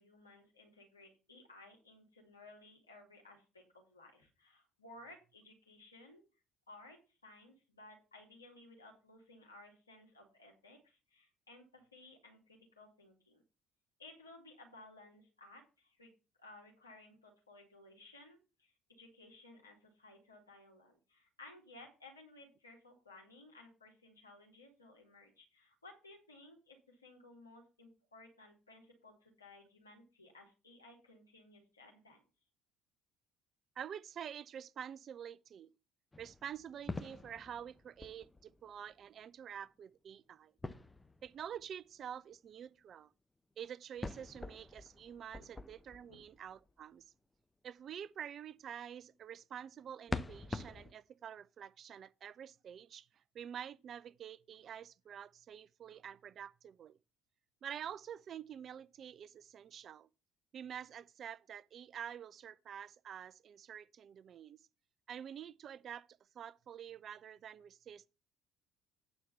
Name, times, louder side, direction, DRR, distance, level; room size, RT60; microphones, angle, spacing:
voice 1, 0.0-6.2 6.7-13.4 14.0-16.1 16.4-32.2 45.4-45.5 46.1-46.2, left 2 dB, 85° left, 2.3 m, -58 dB
voice 2, 33.8-35.7 36.2-40.5 41.2-43.1 43.6-47.1 47.6-53.1 53.3-57.0 57.6-60.1 60.5-64.6 65.1-66.1 66.3-68.1, right 9 dB, 45° right, 0.4 m, -48 dB
sound 1, 36.1-38.9 40.6-41.7 44.0-46.7 50.1-50.9, left 2 dB, 15° left, 0.7 m, -45 dB
9.0 x 4.5 x 6.9 m
figure-of-eight pair, 55°, 0 cm